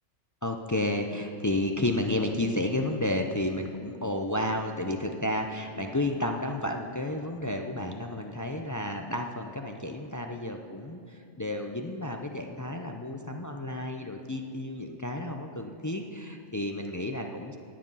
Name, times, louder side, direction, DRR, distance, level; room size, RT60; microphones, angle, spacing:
voice 1, 0.4-17.6, left 1 dB, 25° left, 4 dB, 0.4 m, -31 dB
18.5 x 7.6 x 5.6 m, 2.4 s
omnidirectional pair, 1.3 m